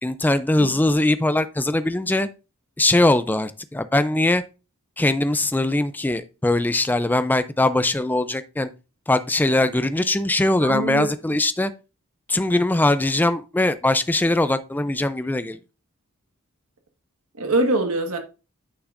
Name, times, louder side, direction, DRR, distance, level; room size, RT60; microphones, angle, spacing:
voice 1, 0.0-2.3 2.8-4.4 5.0-8.7 9.1-11.7 12.3-15.6, left 2 dB, 10° left, 0.4 m, -21 dB
voice 2, 10.6-11.1 17.4-18.2, right 2 dB, 85° right, 1.6 m, -23 dB
9.8 x 6.0 x 2.5 m
head